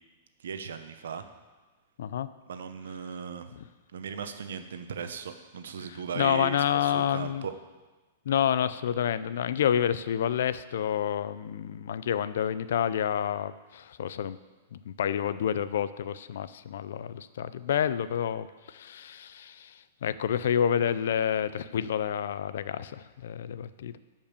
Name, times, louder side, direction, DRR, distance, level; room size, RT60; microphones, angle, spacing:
voice 1, 0.4-1.3 2.5-3.6 3.9-7.5, right 6 dB, 85° right, 9 dB, 1.0 m, -37 dB
voice 2, 5.9-7.5 8.3-14.4 14.7-24.0, left 9 dB, 70° left, 14 dB, 0.5 m, -29 dB
12.0 x 5.3 x 7.0 m, 1.2 s
hypercardioid pair, 160°, 0 cm